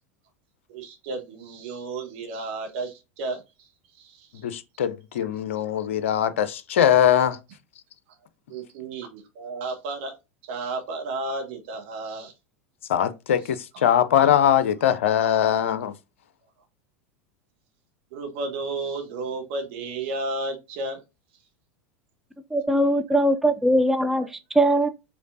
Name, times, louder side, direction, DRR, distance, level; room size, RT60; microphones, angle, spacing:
voice 1, 0.7-3.7 4.0-4.4 8.5-10.1 10.4-12.3 13.7-13.8 18.1-21.0, right 2 dB, 55° right, 1.4 m, -33 dB
voice 2, 4.4-7.4 12.9-15.9, left 10 dB, 70° left, 0.5 m, -21 dB
voice 3, 22.5-24.9, right 1 dB, 5° right, 0.4 m, -21 dB
5.0 x 3.4 x 2.5 m
figure-of-eight pair, 85°, 7 cm